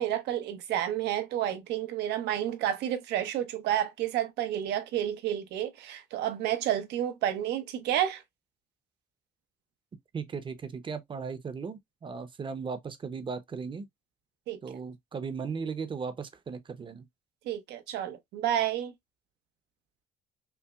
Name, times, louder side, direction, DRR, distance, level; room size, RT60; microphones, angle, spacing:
voice 1, 0.0-8.2 14.5-14.6 17.5-18.9, right 11 dB, 80° right, 0.8 m, -30 dB
voice 2, 10.1-13.9 14.6-17.1, right 5 dB, 30° right, 0.7 m, -37 dB
5.7 x 2.1 x 2.3 m
cardioid pair, 110°, 17 cm